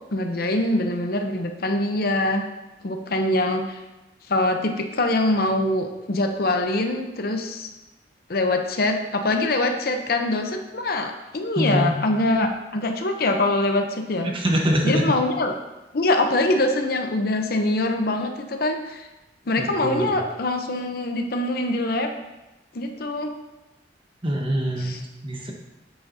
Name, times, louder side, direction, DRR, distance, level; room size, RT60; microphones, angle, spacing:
voice 1, 0.1-2.5 2.8-3.8 4.3-7.7 8.3-14.3 14.8-15.5 15.9-19.1 19.5-22.1 22.7-23.3 24.8-25.0, left 2 dB, 55° left, 5 dB, 0.7 m, -24 dB
voice 2, 11.6-11.9 14.3-15.1 19.6-20.1 24.2-25.5, right 1 dB, 30° right, 0 dB, 1.1 m, -24 dB
9.7 x 7.3 x 2.7 m, 1.0 s
head